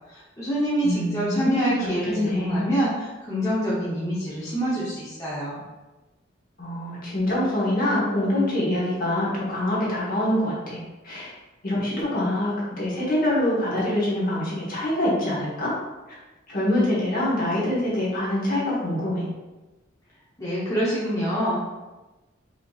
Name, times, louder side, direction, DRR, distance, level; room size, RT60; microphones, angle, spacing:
voice 1, 0.1-5.6 20.4-21.6, right 1 dB, 20° left, -9 dB, 0.8 m, -26 dB
voice 2, 0.8-2.8 6.6-11.3 11.6-15.7 16.1-16.2 16.5-19.3, left 1 dB, 50° left, -6 dB, 1.3 m, -25 dB
4.9 x 2.9 x 2.4 m, 1.1 s
head